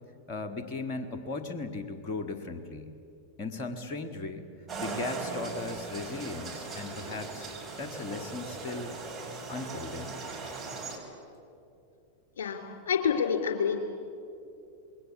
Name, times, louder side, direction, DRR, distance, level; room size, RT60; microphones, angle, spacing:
voice 1, 0.3-2.9 3.4-4.5 4.8-7.5 7.8-8.9 9.5-10.2, left 3 dB, 40° left, 8 dB, 1.8 m, -37 dB
sound 1, 4.7-11.0, right 3 dB, 15° right, 5.1 m, -39 dB
voice 2, 12.9-13.8, left 7 dB, 60° left, 5 dB, 3.6 m, -27 dB
27.0 x 21.5 x 8.3 m, 2.6 s
figure-of-eight pair, 90°, 0 cm